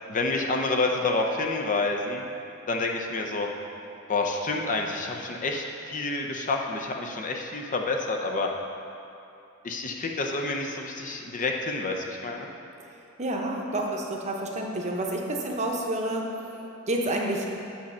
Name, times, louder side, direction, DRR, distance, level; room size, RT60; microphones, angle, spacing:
voice 1, 0.1-2.2 2.7-3.5 4.1-8.5 9.6-12.5, left 3 dB, 40° left, 2 dB, 0.6 m, -28 dB
voice 2, 13.2-17.6, right 1 dB, 35° right, 0 dB, 0.8 m, -29 dB
8.5 x 4.3 x 6.4 m, 2.8 s
head